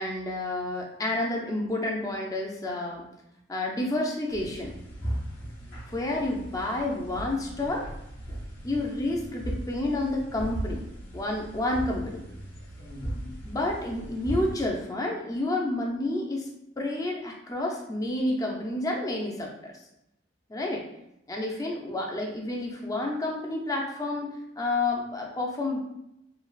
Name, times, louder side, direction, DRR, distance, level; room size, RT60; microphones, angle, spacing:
voice 1, 0.0-3.1 3.5-4.8 5.9-7.9 8.6-10.8 11.1-12.2 13.4-16.5 16.8-19.7 20.5-20.8 21.3-24.3 24.6-25.8, left 2 dB, 20° left, 0 dB, 0.4 m, -30 dB
sound 1, 4.3-14.7, right 1 dB, 70° left, 1.0 m, -37 dB
3.2 x 2.4 x 2.3 m, 0.81 s
head